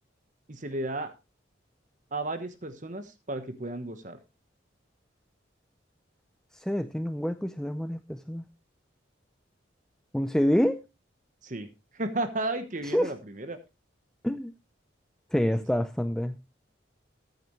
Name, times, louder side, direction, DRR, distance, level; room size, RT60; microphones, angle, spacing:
voice 1, 0.5-1.1 2.1-4.2 11.4-11.7 11.9-13.6, right 2 dB, 40° right, 1.1 m, -33 dB
voice 2, 6.5-8.4 10.1-10.8 12.8-13.1 14.2-14.5 15.3-16.4, equal, 5° left, 0.5 m, -27 dB
14.5 x 9.2 x 3.1 m
head